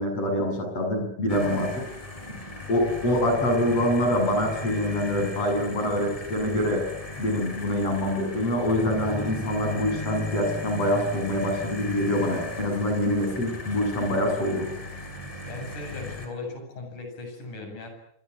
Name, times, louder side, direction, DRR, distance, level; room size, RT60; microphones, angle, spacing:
voice 1, 0.0-1.7 2.7-6.9 7.2-14.7, left 1 dB, 45° left, 4 dB, 8.8 m, -25 dB
sound 1, 1.3-16.3, left 2 dB, 10° left, 5.0 m, -36 dB
voice 2, 15.4-17.9, left 3 dB, 65° left, 4 dB, 9.2 m, -37 dB
27.0 x 24.0 x 8.5 m, 0.75 s
omnidirectional pair, 3.8 m